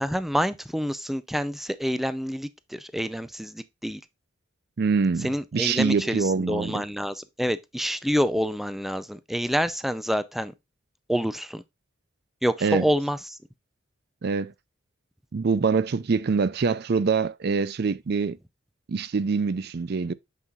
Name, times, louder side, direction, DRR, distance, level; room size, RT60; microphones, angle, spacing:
voice 1, 0.0-4.0 5.2-10.5 11.1-11.6 12.4-13.4, equal, ahead, 0.4 m, -27 dB
voice 2, 4.8-6.7 12.6-12.8 14.2-14.5 15.3-18.4 18.9-20.1, right 5 dB, 55° right, 0.5 m, -24 dB
8.5 x 5.5 x 2.4 m
head